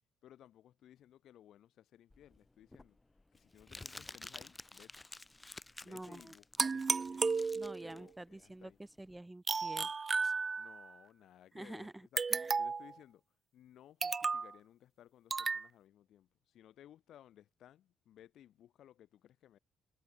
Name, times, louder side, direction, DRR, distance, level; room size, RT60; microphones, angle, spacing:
voice 1, 0.2-3.0 3.3-5.0 5.8-7.4 7.8-8.8 10.6-12.2 12.6-19.6, left 11 dB, 65° left, 3.0 m, -60 dB
Crumpling crinkling, 2.1-9.2, left 2 dB, 15° left, 0.8 m, -52 dB
voice 2, 5.8-6.3 7.5-9.9 10.2-10.3 11.5-12.5, right 1 dB, 10° right, 3.9 m, -48 dB
sound 1, 6.6-8.0 9.5-10.9 12.2-12.9 14.0-14.5 15.3-15.7, right 4 dB, 30° right, 0.6 m, -34 dB
cardioid pair, 95°, 0 cm